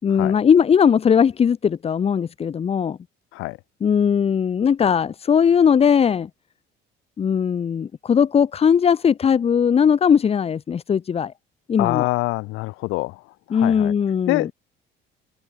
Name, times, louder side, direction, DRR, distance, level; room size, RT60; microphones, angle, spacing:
voice 1, 0.0-3.0 3.8-6.3 7.2-11.3 11.7-12.1 13.5-14.5, left 7 dB, 30° left, 3.0 m, -19 dB
voice 2, 11.8-13.9 14.3-14.5, left 22 dB, 90° left, 5.0 m, -25 dB
cardioid pair, 155°, 20 cm